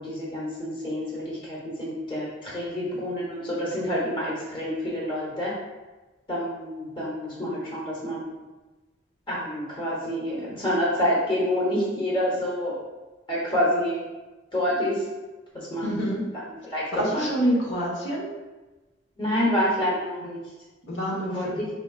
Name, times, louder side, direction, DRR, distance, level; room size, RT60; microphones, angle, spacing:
voice 1, 0.0-5.5 6.3-8.3 9.3-12.7 13.3-14.0 14.5-15.0 15.5-17.3 19.2-20.4 21.3-21.6, equal, 25° left, -5 dB, 1.1 m, -28 dB
voice 2, 15.8-16.2 16.9-18.3 20.9-21.4, equal, 70° left, -4 dB, 1.2 m, -26 dB
5.0 x 3.6 x 2.4 m, 1.2 s
head